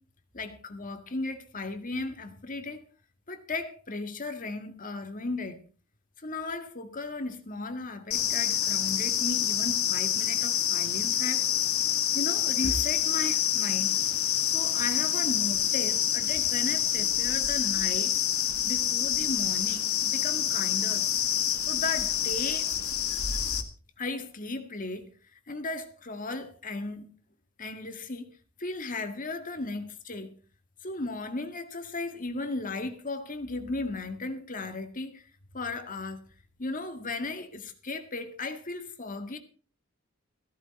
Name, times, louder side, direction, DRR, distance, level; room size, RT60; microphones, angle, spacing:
voice 1, 0.3-2.8 3.3-5.6 6.2-11.5 12.1-14.0 14.5-18.1 18.6-21.0 21.6-22.7 24.0-25.1 25.5-27.1 27.6-28.2 28.6-30.3 30.8-35.2 35.5-36.2 36.6-39.4, left 3 dB, 40° left, 1.9 m, -35 dB
sound 1, 8.1-23.6, left 10 dB, 90° left, 1.8 m, -27 dB
15.0 x 13.0 x 4.3 m
head